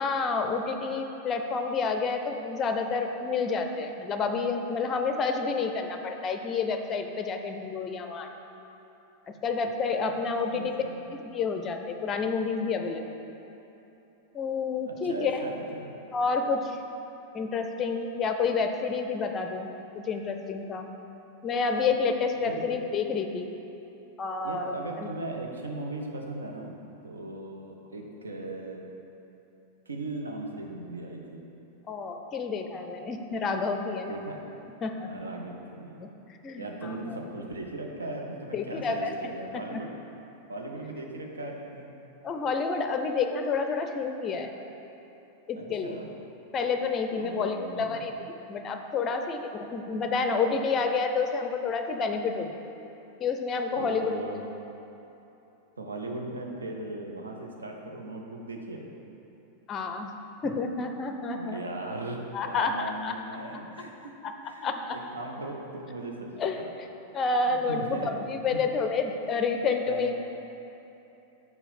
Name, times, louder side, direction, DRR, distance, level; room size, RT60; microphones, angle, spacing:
voice 1, 0.0-8.3 9.4-10.7 11.1-13.0 14.3-15.4 16.1-16.8 17.3-19.7 19.9-20.9 21.4-23.5 24.2-25.1 31.9-34.1 34.8-35.1 36.4-37.2 38.5-39.1 39.5-39.6 42.2-44.5 45.5-45.9 46.5-48.1 48.5-52.6 53.2-54.2 59.7-60.1 60.4-61.6 62.3-63.1 64.2-64.3 64.6-65.0 66.4-66.6 67.1-70.1, left 4 dB, 25° left, 6 dB, 0.5 m, -29 dB
voice 2, 10.5-11.0 14.3-14.6 14.9-16.0 22.4-22.6 24.4-28.8 29.9-31.4 34.1-34.4 35.1-36.0 36.6-39.9 40.5-41.9 45.6-46.1 47.2-47.9 53.8-54.4 55.8-58.8 61.4-64.1 64.4-66.7 67.5-68.1 68.5-68.6 69.8-70.1, right 2 dB, 75° right, 1 dB, 0.8 m, -38 dB
5.7 x 4.6 x 5.5 m, 3.0 s
figure-of-eight pair, 90°, 0 cm